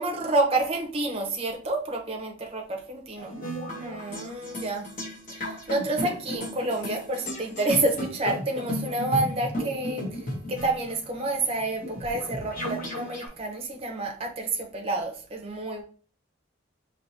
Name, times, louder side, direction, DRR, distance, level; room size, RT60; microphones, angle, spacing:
voice 1, 0.0-3.3 3.8-4.9 5.3-10.2 10.5-15.8, right 2 dB, 30° right, 1 dB, 0.7 m, -29 dB
sound 1, 3.2-13.3, equal, 40° left, 1.2 m, -34 dB
4.8 x 2.8 x 2.7 m, 0.41 s
head